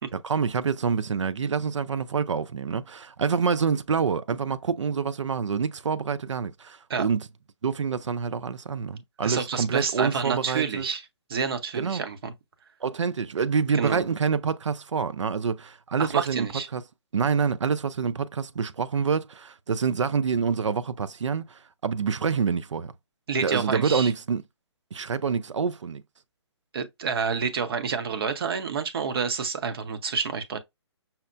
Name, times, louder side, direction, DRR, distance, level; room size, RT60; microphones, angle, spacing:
voice 1, 0.1-7.3 7.6-10.9 11.8-12.0 12.8-16.8 17.1-22.9 23.4-24.4 24.9-26.0, right 6 dB, 85° right, 0.5 m, -27 dB
voice 2, 9.2-11.0 11.3-12.3 13.7-14.0 16.0-16.7 23.3-24.1 26.7-30.6, right 6 dB, 55° right, 0.8 m, -28 dB
5.7 x 2.1 x 2.5 m
hypercardioid pair, 150°, 15 cm